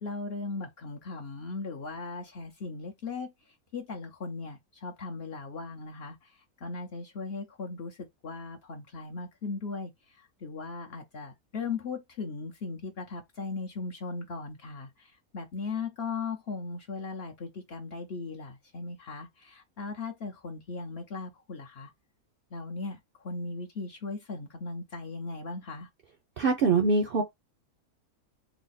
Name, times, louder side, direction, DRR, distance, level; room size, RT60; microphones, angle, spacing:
voice 1, 0.0-3.3 3.7-9.9 10.2-21.9 22.5-25.9, left 4 dB, 55° left, 0.8 m, -38 dB
voice 2, 26.4-27.2, right 4 dB, 55° right, 0.6 m, -23 dB
3.4 x 2.0 x 3.9 m
omnidirectional pair, 1.6 m